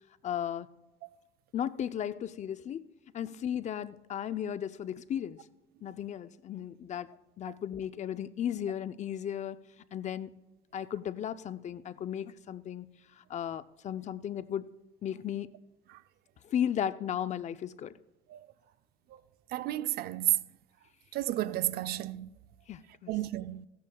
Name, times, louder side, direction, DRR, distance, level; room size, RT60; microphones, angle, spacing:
voice 1, 0.2-0.7 1.5-2.8 3.1-5.4 5.8-7.1 7.4-9.6 9.9-10.4 10.7-12.9 13.2-14.7 15.0-15.5 16.4-18.0 22.7-23.1, left 9 dB, 45° left, 0.5 m, -35 dB
voice 2, 19.5-20.4 21.1-22.3 23.1-23.7, right 14 dB, 65° right, 0.5 m, -31 dB
15.5 x 13.0 x 2.3 m
cardioid pair, 110°, 17 cm